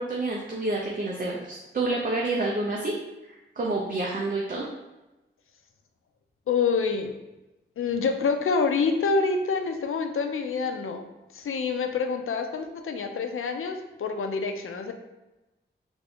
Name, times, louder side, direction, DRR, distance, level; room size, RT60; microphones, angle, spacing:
voice 1, 0.0-3.0 3.3-4.7, right 2 dB, 40° right, -3 dB, 0.5 m, -28 dB
voice 2, 6.5-7.1 7.8-11.1 11.3-14.9, left 4 dB, 85° left, 6 dB, 0.4 m, -27 dB
3.4 x 2.6 x 3.4 m, 1.0 s
wide cardioid pair, 115°, 21 cm